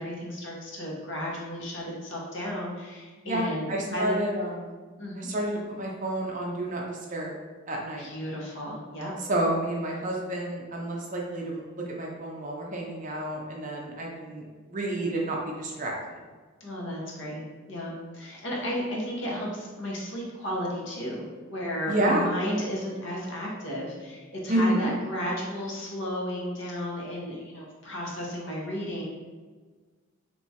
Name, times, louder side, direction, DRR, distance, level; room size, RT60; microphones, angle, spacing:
voice 1, 0.0-4.1 5.0-5.3 8.0-9.1 16.6-17.4 17.7-29.0, equal, 55° left, -3 dB, 0.8 m, -33 dB
voice 2, 3.2-4.7 5.2-7.3 7.7-8.1 9.2-15.9 21.9-22.3 24.5-24.9, right 1 dB, 35° right, -1 dB, 0.5 m, -29 dB
3.4 x 2.9 x 2.7 m, 1.4 s
head